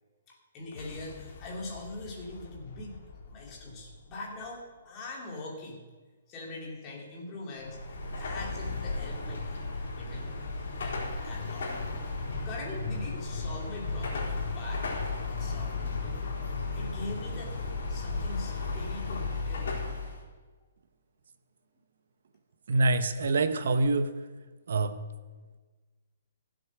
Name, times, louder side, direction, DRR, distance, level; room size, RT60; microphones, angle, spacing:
voice 1, 0.3-5.8 6.3-7.8 8.2-9.4 9.9-10.4 10.8-11.7 12.4-14.9 15.3-16.2 16.7-19.8, left 2 dB, 20° left, -3 dB, 2.6 m, -42 dB
sound 1, 0.6-5.1, left 4 dB, 45° left, 2.0 m, -50 dB
Car passing by / Traffic noise roadway noise / Engine, 7.6-20.2, left 3 dB, 65° left, 4.3 m, -34 dB
voice 2, 22.7-24.1 24.7-25.0, right 2 dB, 65° right, 9 dB, 1.1 m, -25 dB
15.5 x 7.9 x 6.3 m, 1.3 s
hypercardioid pair, 170°, 0 cm